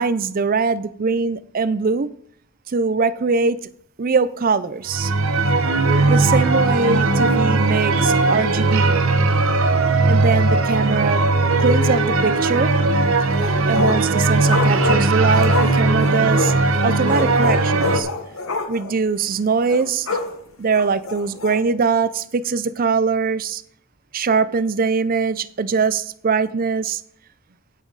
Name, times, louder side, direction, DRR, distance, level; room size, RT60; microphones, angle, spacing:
voice 1, 0.0-2.1 2.7-3.6 4.0-5.1 6.0-9.0 10.1-11.2 11.6-12.7 13.6-16.5 16.8-18.1 18.7-20.1 20.6-23.6 24.1-27.0, right 4 dB, 40° right, 0.5 m, -22 dB
sound 1, 4.9-18.0, right 3 dB, 70° right, 0.9 m, -18 dB
sound 2, 13.2-14.1 14.4-16.6 17.1-18.9 19.2-19.3 19.7-20.3 20.7-21.6, left 3 dB, 70° left, 1.5 m, -27 dB
10.0 x 9.4 x 4.0 m
head